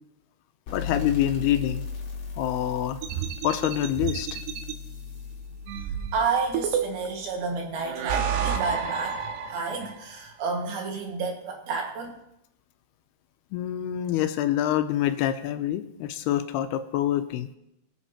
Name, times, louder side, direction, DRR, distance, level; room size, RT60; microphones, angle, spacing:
voice 1, 0.7-1.8 2.4-3.0 3.4-4.3 13.5-17.5, left 12 dB, 85° left, 9 dB, 2.6 m, -26 dB
sound 1, 0.7-7.9, left 5 dB, 45° left, 2.5 m, -37 dB
sound 2, 3.0-4.8 5.7-7.2 7.8-10.0, right 7 dB, 90° right, 3.0 m, -30 dB
voice 2, 6.1-12.2, right 4 dB, 70° right, 0 dB, 3.7 m, -30 dB
22.5 x 8.0 x 3.0 m, 0.83 s
omnidirectional pair, 4.7 m